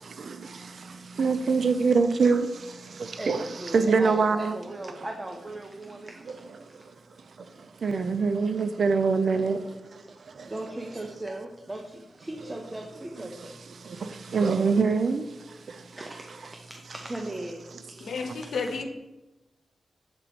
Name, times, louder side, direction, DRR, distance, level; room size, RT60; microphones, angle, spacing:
voice 1, 0.0-4.6 5.0-5.1 5.9-6.0 6.2-10.8 13.2-16.5 17.7-17.8, right 4 dB, 70° right, 0.4 m, -27 dB
voice 2, 3.2-6.5 9.1-9.5 10.5-13.5 16.0-17.9, right 1 dB, 20° right, 0.6 m, -38 dB
voice 3, 18.0-18.8, left 4 dB, 85° left, 0.8 m, -31 dB
7.5 x 2.9 x 5.0 m
wide cardioid pair, 90°, 0 cm